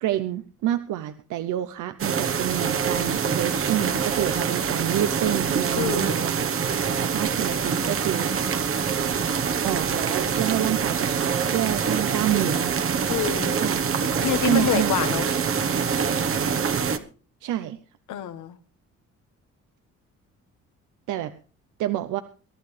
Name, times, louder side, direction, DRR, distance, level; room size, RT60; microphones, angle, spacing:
voice 1, 0.0-6.5 7.0-8.3 9.6-12.8 13.6-13.8 14.4-14.9 17.4-17.8 21.1-21.3 21.8-22.2, right 13 dB, 85° right, 11 dB, 0.7 m, -28 dB
sound 1, 2.0-17.0, right 6 dB, 45° right, 1.1 m, -25 dB
voice 2, 5.7-6.2 13.1-13.6 14.2-15.3 18.1-18.6, left 9 dB, 80° left, 10 dB, 1.3 m, -26 dB
22.5 x 12.0 x 3.3 m, 0.37 s
cardioid pair, 90°, 30 cm